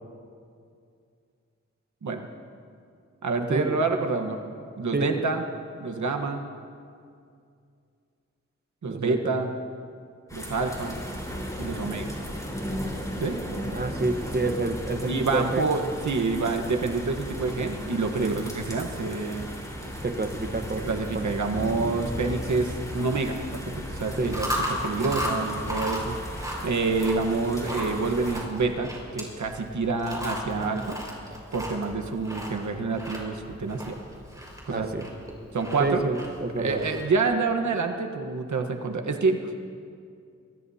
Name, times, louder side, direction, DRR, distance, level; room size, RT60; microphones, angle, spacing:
voice 1, 3.2-4.4 4.8-5.4 5.8-6.4 8.8-9.5 10.3-11.0 11.6-12.1 13.2-13.4 15.1-19.5 20.8-23.6 24.0-26.2 26.6-31.0 31.5-34.0 34.6-34.9 35.5-36.1 36.6-39.4, right 3 dB, 80° right, 4 dB, 1.3 m, -27 dB
voice 2, 8.8-9.4 13.7-15.7 18.2-18.4 20.0-20.9 21.1-21.3 24.2-24.3 34.7-35.1 35.8-36.8, right 3 dB, 35° right, 7 dB, 1.2 m, -28 dB
sound 1, 10.3-28.4, equal, 10° left, 4.4 m, -36 dB
Chewing mastication, 24.1-37.3, equal, 10° right, 5.2 m, -35 dB
24.5 x 21.0 x 2.8 m, 2.4 s
wide cardioid pair, 65°, 29 cm